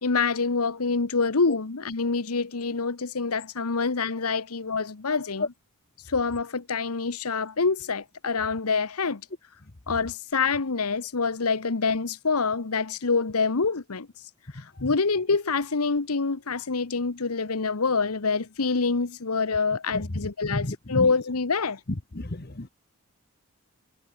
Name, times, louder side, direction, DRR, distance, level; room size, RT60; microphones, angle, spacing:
voice 1, 0.0-5.5 6.1-9.2 9.9-14.1 14.8-21.8, left 4 dB, 90° left, 1.1 m, -26 dB
voice 2, 19.9-21.2 21.9-22.7, left 2 dB, 45° left, 1.2 m, -31 dB
head